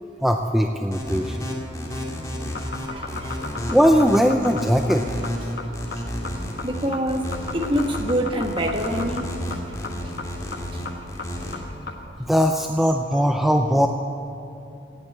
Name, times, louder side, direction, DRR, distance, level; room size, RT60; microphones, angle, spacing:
voice 1, 0.2-1.5 3.7-5.1 12.3-13.9, equal, ahead, 0.5 m, -19 dB
sound 1, 0.9-11.5, equal, 20° left, 2.3 m, -31 dB
sound 2, 2.4-12.1, left 4 dB, 55° left, 1.3 m, -34 dB
voice 2, 2.8-3.4 6.0-6.1 6.6-9.3 10.7-10.8, equal, 25° right, 1.2 m, -26 dB
17.0 x 9.9 x 8.5 m
head